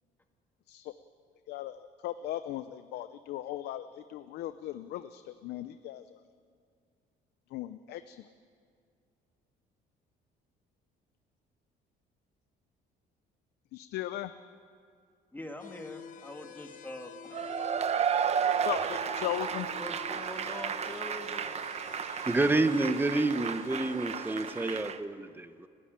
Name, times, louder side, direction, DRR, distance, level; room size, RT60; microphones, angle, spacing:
voice 1, 1.5-6.0 7.5-8.2 13.7-14.3 18.6-19.7, left 13 dB, 75° left, 12 dB, 0.6 m, -37 dB
voice 2, 15.3-17.4 19.8-21.6, left 1 dB, 10° left, 5 dB, 1.8 m, -44 dB
sound 1, 15.6-24.8, left 8 dB, 50° left, 1.1 m, -49 dB
Cheering / Applause / Crowd, 17.3-25.0, right 7 dB, 40° right, 0.9 m, -33 dB
voice 3, 22.2-25.7, right 2 dB, 10° right, 11 dB, 0.9 m, -29 dB
30.0 x 10.0 x 8.9 m, 2.2 s
cardioid pair, 110°, 17 cm